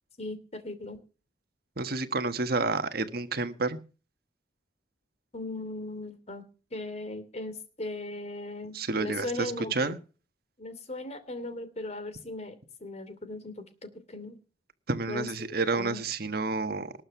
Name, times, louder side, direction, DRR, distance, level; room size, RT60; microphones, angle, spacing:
voice 1, 0.2-1.0 5.3-6.4 6.7-9.9 10.6-14.4 15.1-16.0, left 2 dB, 35° left, 10 dB, 2.8 m, -38 dB
voice 2, 1.8-3.8 8.7-10.0 14.9-16.9, right 3 dB, 55° right, 9 dB, 1.5 m, -30 dB
19.5 x 7.7 x 6.1 m, 0.36 s
head